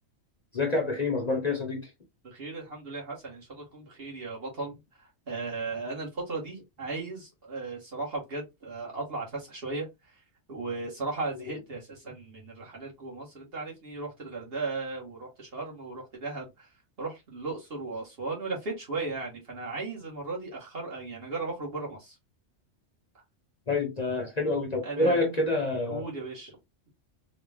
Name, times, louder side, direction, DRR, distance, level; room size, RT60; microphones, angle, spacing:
voice 1, 0.5-1.9 11.5-11.6 23.7-26.1, left 2 dB, 35° left, 0.9 m, -27 dB
voice 2, 2.2-10.2 10.5-16.7 17.0-22.2 24.8-25.2 25.9-26.5, right 3 dB, 50° right, 1.6 m, -36 dB
3.8 x 2.3 x 3.5 m
omnidirectional pair, 1.3 m